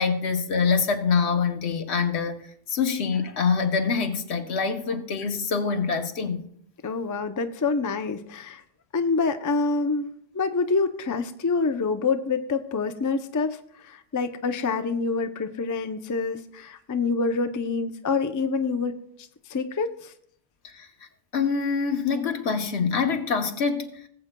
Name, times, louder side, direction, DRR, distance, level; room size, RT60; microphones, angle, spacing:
voice 1, 0.0-2.4 2.7-6.4 20.8-20.9 21.3-23.9, left 5 dB, 85° left, 1.2 m, -25 dB
voice 2, 6.8-8.6 8.9-13.6 13.8-18.9 19.5-20.1, left 4 dB, 30° left, 0.3 m, -26 dB
19.0 x 7.8 x 2.2 m
omnidirectional pair, 1.1 m